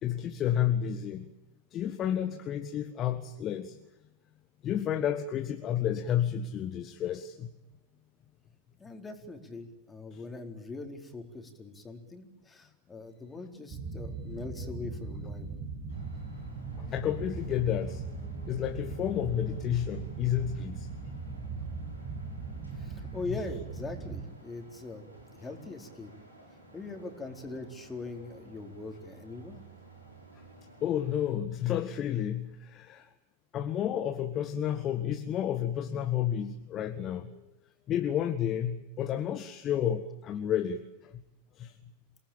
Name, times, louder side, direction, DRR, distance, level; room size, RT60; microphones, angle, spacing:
voice 1, 0.0-1.3 1.7-3.8 4.6-7.5 10.1-10.2 16.8-18.0 18.4-20.9 30.8-33.1 33.5-37.4 37.9-41.1 41.6-41.7, left 10 dB, 30° left, 8 dB, 1.6 m, -31 dB
voice 2, 8.8-15.5 22.7-25.0 25.3-26.1 26.7-29.6, left 3 dB, 15° left, 4 dB, 4.3 m, -41 dB
sound 1, 13.7-24.3, right 4 dB, 35° right, 7.1 m, -39 dB
sound 2, 15.9-31.2, right 2 dB, 85° right, 7.3 m, -55 dB
28.0 x 19.5 x 8.9 m, 0.97 s
figure-of-eight pair, 90°, 0 cm